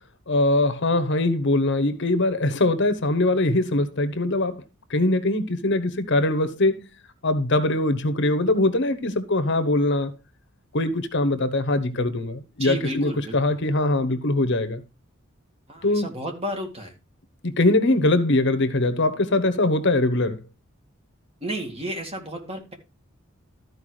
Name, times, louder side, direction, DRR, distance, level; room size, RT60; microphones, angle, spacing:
voice 1, 0.3-4.6 4.9-6.8 7.2-10.1 10.7-14.8 15.8-16.1 17.4-20.4, left 2 dB, 55° left, 1.0 m, -22 dB
voice 2, 12.6-13.6 15.7-16.9 21.4-22.7, right 1 dB, 30° right, 2.1 m, -32 dB
13.0 x 4.8 x 4.8 m
head